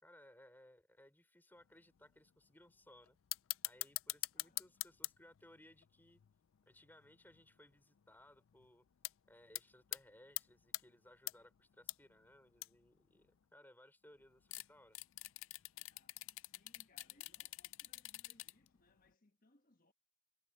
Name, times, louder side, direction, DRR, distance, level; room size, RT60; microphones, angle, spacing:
voice 1, 0.0-3.2 3.7-6.2 6.7-8.8 9.3-15.0, left 1 dB, 10° left, 4.4 m, -63 dB
sound 1, 1.8-1.9 2.3-2.7 3.1-7.5 8.0-8.1 8.3-8.7 9.0-9.1 9.5-10.0 10.4-10.8 11.3-11.9 12.2-12.3 12.5-12.9 14.5-18.7 19.0-19.1, left 19 dB, 60° left, 0.4 m, -44 dB
voice 2, 4.3-4.7 15.8-19.9, left 2 dB, 40° left, 1.3 m, -72 dB
head